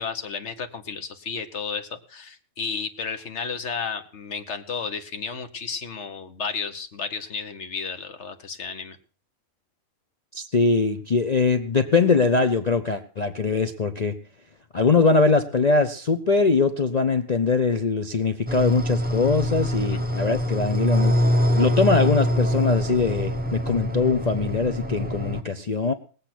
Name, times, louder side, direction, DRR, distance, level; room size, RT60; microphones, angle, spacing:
voice 1, 0.0-9.0, left 5 dB, 55° left, 8 dB, 1.5 m, -32 dB
voice 2, 10.3-14.2 14.7-21.2 21.5-25.9, left 4 dB, 40° left, 8 dB, 0.7 m, -22 dB
sound 1, 18.5-25.4, equal, 10° right, 0.9 m, -24 dB
19.0 x 8.3 x 6.0 m, 0.41 s
omnidirectional pair, 1.5 m